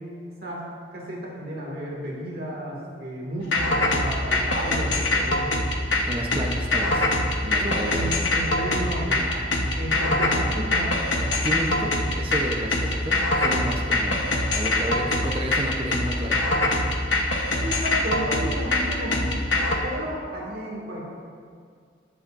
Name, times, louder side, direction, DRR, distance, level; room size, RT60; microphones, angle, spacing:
voice 1, 0.3-0.6 0.9-5.5 7.6-11.0 17.6-19.5 19.8-21.1, equal, 50° right, -3 dB, 2.2 m, -32 dB
sound 1, 3.5-19.8, left 2 dB, 75° left, 1.1 m, -23 dB
voice 2, 6.1-7.1 7.4-8.4 11.3-16.4, equal, 30° right, 1 dB, 0.9 m, -31 dB
20.5 x 7.4 x 2.6 m, 2.1 s
head